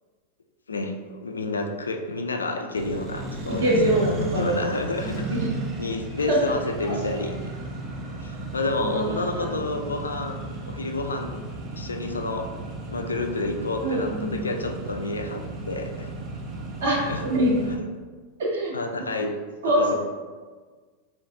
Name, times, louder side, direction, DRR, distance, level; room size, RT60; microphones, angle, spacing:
voice 1, 0.7-5.5 5.8-7.4 8.2-11.3 11.8-12.5 12.9-16.1 17.1-17.2 17.7-17.8 18.7-19.3 19.6-19.9, left 2 dB, 75° left, 5 dB, 0.3 m, -30 dB
Accelerating revving vroom, 2.7-17.7, right 2 dB, 30° right, 0.5 m, -35 dB
voice 2, 3.6-4.6 5.0-5.5 6.3-6.5 6.8-7.2 8.8-9.5 13.8-14.4 16.8-17.7 18.4-18.7 19.6-20.0, right 1 dB, 60° right, -4 dB, 1.0 m, -24 dB
3.9 x 2.5 x 2.4 m, 1.4 s
figure-of-eight pair, 90°, 0 cm